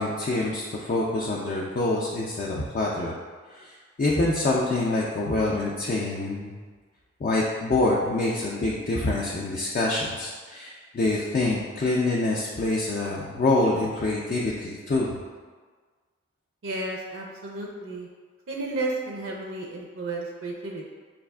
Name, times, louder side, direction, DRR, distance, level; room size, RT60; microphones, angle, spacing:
voice 1, 0.0-3.1 3.5-6.5 7.2-15.2, left 2 dB, 45° left, -4 dB, 0.3 m, -26 dB
voice 2, 16.6-18.1 18.5-20.9, right 2 dB, 75° right, -1 dB, 0.4 m, -32 dB
5.4 x 2.4 x 2.3 m, 1.5 s
head